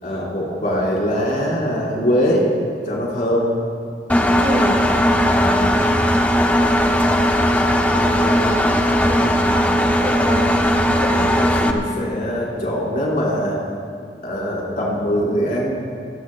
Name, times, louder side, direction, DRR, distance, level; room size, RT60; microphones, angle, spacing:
voice 1, 0.0-2.4 2.9-3.5 5.4-5.9 8.0-8.6 11.2-13.6 14.2-15.7, equal, 45° left, -5 dB, 4.5 m, -22 dB
Engine, 4.1-11.7, equal, 10° left, 0.7 m, -17 dB
voice 2, 4.4-4.8 6.5-7.1 9.1-9.3 10.0-11.3, equal, 35° right, 0 dB, 1.7 m, -27 dB
26.0 x 17.5 x 2.2 m, 2.2 s
head